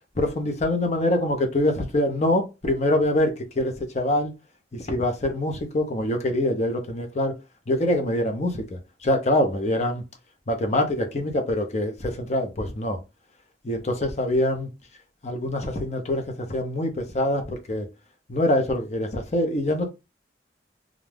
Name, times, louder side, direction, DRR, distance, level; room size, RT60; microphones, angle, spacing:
voice 1, 0.2-4.3 4.7-7.3 7.7-10.0 10.5-13.0 13.6-14.7 15.2-17.9 18.3-19.9, left 1 dB, 40° left, 0.6 m, -24 dB
2.5 x 2.2 x 3.3 m
head